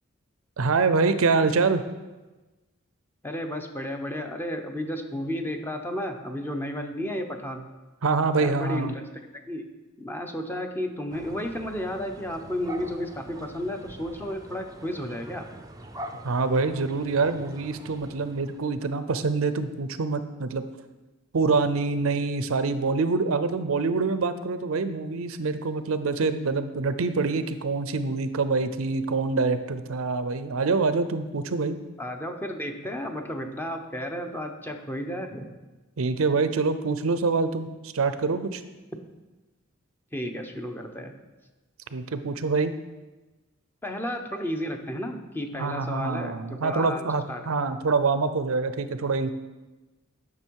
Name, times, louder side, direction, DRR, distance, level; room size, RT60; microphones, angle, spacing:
voice 1, 0.6-1.8 8.0-8.9 16.2-20.6 21.3-31.8 36.0-38.6 41.9-42.7 45.6-49.3, right 4 dB, 80° right, 11 dB, 0.6 m, -25 dB
voice 2, 3.2-7.6 8.3-9.0 9.3-9.7 10.0-15.5 32.0-35.5 40.1-41.1 43.8-47.5, equal, 10° left, 4 dB, 0.8 m, -33 dB
sound 1, 11.1-18.9, right 1 dB, 15° right, 0.6 m, -44 dB
10.5 x 6.1 x 4.7 m, 1.2 s
head